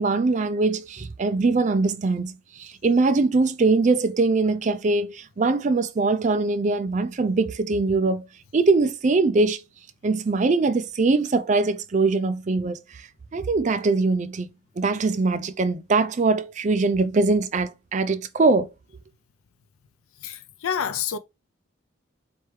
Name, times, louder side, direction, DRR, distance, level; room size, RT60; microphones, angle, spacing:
voice 1, 0.0-8.3 8.5-9.6 10.0-14.5 14.8-18.7, right 3 dB, 35° right, 0.4 m, -22 dB
voice 2, 20.2-21.2, left 8 dB, 90° left, 0.5 m, -28 dB
4.3 x 3.3 x 3.2 m
head